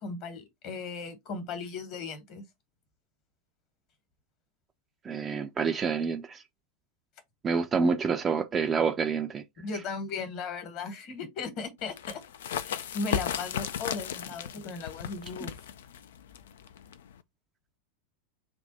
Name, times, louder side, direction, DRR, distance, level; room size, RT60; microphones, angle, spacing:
voice 1, 0.0-2.4 9.6-12.2 12.6-15.5, left 4 dB, 40° left, 1.2 m, -37 dB
voice 2, 5.0-6.4 7.4-9.4, right 5 dB, 20° right, 0.5 m, -28 dB
sound 1, 11.8-17.2, left 8 dB, 60° left, 0.3 m, -36 dB
3.4 x 2.4 x 3.9 m
figure-of-eight pair, 90°, 0 cm